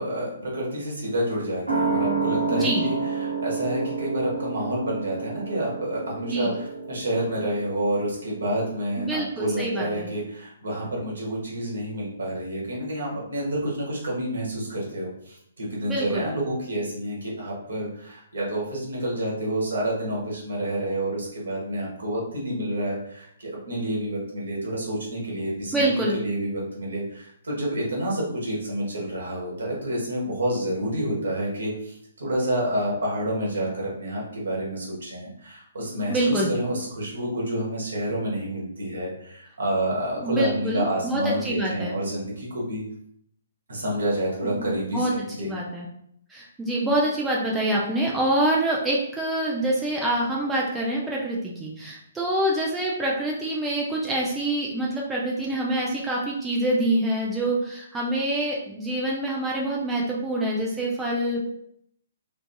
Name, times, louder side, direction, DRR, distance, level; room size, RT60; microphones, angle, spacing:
voice 1, 0.0-42.8 43.7-45.5, right 1 dB, 65° right, -4 dB, 1.1 m, -29 dB
sound 1, 1.7-8.7 9.0-9.1, right 4 dB, 85° right, 0.8 m, -29 dB
voice 2, 2.5-2.8 6.2-6.5 9.0-10.1 15.9-16.3 25.7-26.2 36.1-36.5 40.2-42.0 44.6-45.1 45.4-45.9 46.3-61.5, right 1 dB, 10° right, -3 dB, 0.4 m, -26 dB
2.6 x 2.5 x 2.2 m, 0.71 s
figure-of-eight pair, 130°, 0 cm